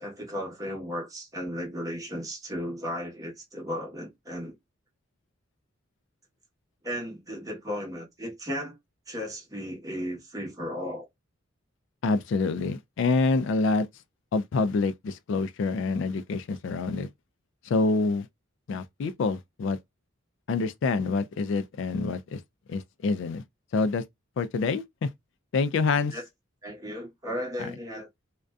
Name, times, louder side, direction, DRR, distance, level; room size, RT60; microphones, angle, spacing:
voice 1, 0.0-4.6 6.8-8.8 9.1-11.1 26.0-26.2 26.6-28.1, equal, 20° right, 1.0 m, -35 dB
voice 2, 12.0-13.9 14.3-17.1 17.7-18.3 18.7-19.8 20.5-22.4 22.7-23.4 23.7-24.0 24.4-25.1 25.5-26.1, left 3 dB, 65° left, 0.3 m, -26 dB
2.5 x 2.1 x 2.3 m
head